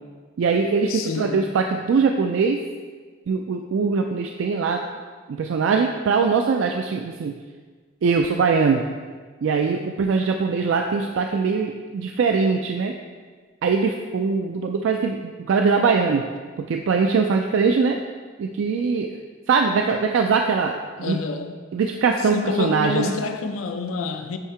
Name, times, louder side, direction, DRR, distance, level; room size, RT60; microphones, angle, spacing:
voice 1, 0.4-2.6 3.3-4.8 5.3-7.4 8.0-8.9 9.4-13.0 13.6-16.3 16.6-18.0 18.4-19.1 19.5-21.2 21.7-23.1, right 5 dB, 70° right, 3 dB, 0.3 m, -22 dB
voice 2, 0.9-1.4 21.0-21.6 22.2-24.4, left 4 dB, 85° left, 7 dB, 0.5 m, -28 dB
8.2 x 2.7 x 4.4 m, 1.5 s
head